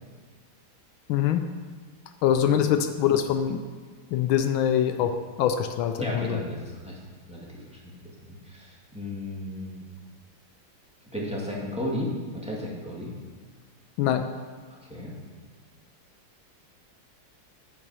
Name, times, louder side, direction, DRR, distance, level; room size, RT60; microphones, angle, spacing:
voice 1, 1.1-1.4 2.2-3.6 4.1-5.1 5.4-6.4 14.0-14.3, left 9 dB, 80° left, 8 dB, 1.4 m, -23 dB
voice 2, 6.0-6.9 7.3-7.9 8.4-9.8 11.1-13.1 14.9-15.1, left 1 dB, 5° right, -4 dB, 1.8 m, -34 dB
9.5 x 7.7 x 5.6 m, 1.5 s
omnidirectional pair, 2.3 m